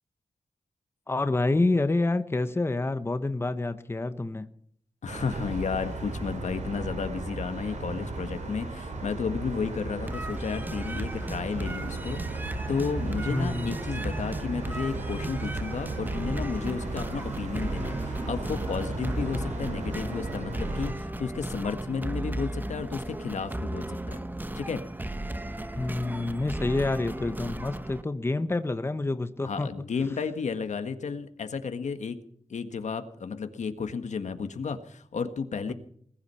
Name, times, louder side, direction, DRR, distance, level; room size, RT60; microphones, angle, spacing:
voice 1, 1.1-4.5 13.3-13.9 25.8-29.7, left 2 dB, 20° left, 11 dB, 1.0 m, -28 dB
voice 2, 5.0-24.2 24.5-24.8 29.4-32.2 32.5-35.7, left 5 dB, 85° left, 9 dB, 1.7 m, -33 dB
sound 1, 5.1-20.9, right 3 dB, 85° right, 5.8 m, -35 dB
sound 2, 10.1-28.0, right 1 dB, 15° right, 1.1 m, -35 dB
21.0 x 11.5 x 5.7 m, 0.64 s
wide cardioid pair, 135°, 12 cm